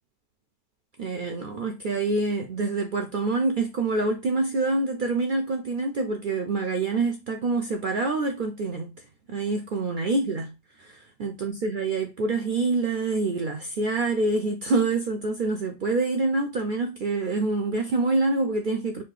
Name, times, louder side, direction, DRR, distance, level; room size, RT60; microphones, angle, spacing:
voice 1, 1.0-8.9 9.3-10.5 10.8-19.0, right 3 dB, 70° right, 0.4 m, -26 dB
4.2 x 2.7 x 3.2 m
omnidirectional pair, 1.4 m